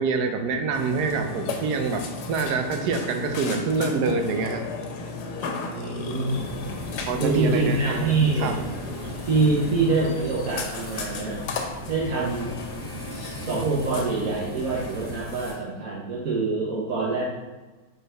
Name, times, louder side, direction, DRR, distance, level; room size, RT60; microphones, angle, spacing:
voice 1, 0.0-4.6 7.1-8.6, right 4 dB, 85° right, 5 dB, 1.2 m, -26 dB
Burping eructation, 0.7-15.2, left 4 dB, 85° left, 1.3 m, -35 dB
voice 2, 5.7-6.5 7.2-8.6 9.3-11.4 11.9-12.6 13.1-17.2, right 3 dB, 65° right, -6 dB, 1.4 m, -25 dB
sound 1, 6.2-15.5, right 1 dB, 5° left, 1.4 m, -39 dB
4.9 x 4.5 x 4.5 m, 1.2 s
omnidirectional pair, 1.7 m